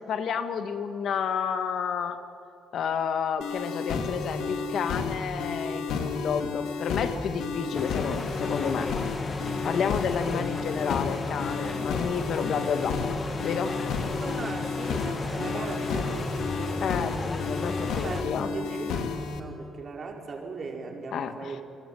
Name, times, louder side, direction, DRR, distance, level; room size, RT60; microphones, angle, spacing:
voice 1, 0.0-2.2 2.7-8.9 9.6-13.0 13.4-13.8 16.8-18.5 21.1-21.6, left 7 dB, 70° left, 8 dB, 1.9 m, -30 dB
sound 1, 3.4-19.4, left 5 dB, 85° left, 2.5 m, -32 dB
sound 2, 7.7-18.2, left 3 dB, 25° left, 1.8 m, -34 dB
voice 2, 14.2-16.9 18.0-18.3 18.5-21.6, right 4 dB, 45° right, 1 dB, 5.1 m, -38 dB
29.0 x 20.5 x 9.4 m, 2.5 s
cardioid pair, 90°, 0 cm